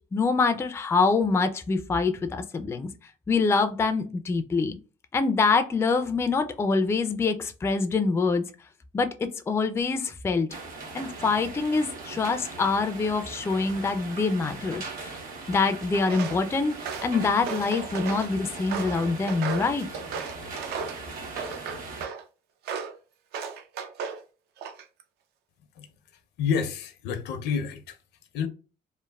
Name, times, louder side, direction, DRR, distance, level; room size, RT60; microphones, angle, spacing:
voice 1, 0.1-2.9 3.3-4.8 5.1-8.4 8.9-9.1 9.5-10.5 10.9-15.2 15.5-16.8 17.0-19.9, left 4 dB, 15° left, 0.3 m, -25 dB
sound 1, 10.5-22.1, right 3 dB, 55° right, 1.2 m, -39 dB
Walk footsteps, 16.1-16.4 16.8-18.3 18.7-21.0 21.4-22.2 22.7-23.0 23.3-24.2 24.6-25.0, right 6 dB, 70° right, 0.5 m, -35 dB
voice 2, 26.4-28.0 28.3-28.5, left 6 dB, 75° left, 0.6 m, -28 dB
3.1 x 2.0 x 2.2 m
cardioid pair, 110°, 17 cm